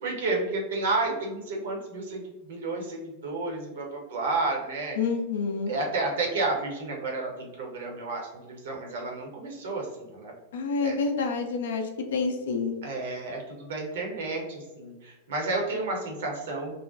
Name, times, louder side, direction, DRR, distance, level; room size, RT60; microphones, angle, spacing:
voice 1, 0.0-5.0 5.7-10.3 10.8-11.0 12.8-16.8, right 3 dB, 60° right, 0 dB, 0.7 m, -31 dB
voice 2, 5.0-5.7 10.5-12.8, left 4 dB, 60° left, 5 dB, 0.4 m, -28 dB
2.5 x 2.1 x 2.4 m, 1.1 s
figure-of-eight pair, 90°, 0 cm